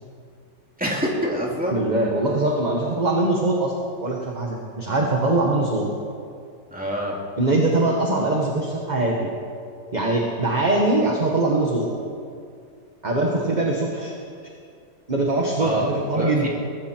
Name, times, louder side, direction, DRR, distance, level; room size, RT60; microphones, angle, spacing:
voice 1, 0.8-1.8 6.7-7.2 15.6-15.9 16.2-16.5, equal, 5° right, -3 dB, 2.7 m, -26 dB
voice 2, 1.7-3.7 4.0-5.9 7.4-9.3 9.9-11.9 13.0-14.1 15.1-16.5, right 2 dB, 25° right, -1 dB, 1.4 m, -22 dB
20.0 x 15.0 x 4.5 m, 2.3 s
omnidirectional pair, 1.9 m